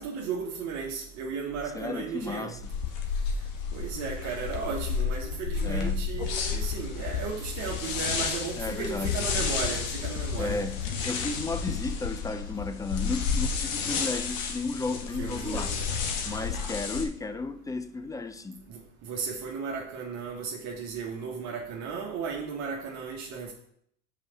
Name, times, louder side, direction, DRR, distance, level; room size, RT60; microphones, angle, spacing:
voice 1, 0.0-2.6 3.7-10.7 15.2-15.9 16.2-16.5 18.7-23.5, right 5 dB, 50° right, 1.6 m, -35 dB
voice 2, 1.7-2.7 5.6-6.0 8.6-9.2 10.4-15.8 16.3-18.6, left 3 dB, 10° left, 0.5 m, -34 dB
sound 1, 2.6-17.0, left 6 dB, 60° left, 1.6 m, -31 dB
sound 2, 6.1-11.5, left 3 dB, 35° left, 3.6 m, -53 dB
5.7 x 5.1 x 6.7 m
hypercardioid pair, 100°, 37 cm